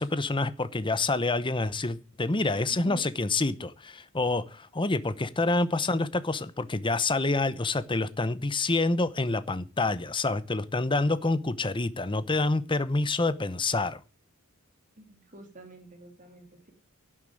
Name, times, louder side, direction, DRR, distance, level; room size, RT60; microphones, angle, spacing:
voice 1, 0.0-14.0, left 2 dB, 25° left, 0.8 m, -27 dB
voice 2, 2.7-3.1 15.0-16.7, right 2 dB, 35° right, 2.9 m, -48 dB
11.5 x 7.4 x 8.9 m
head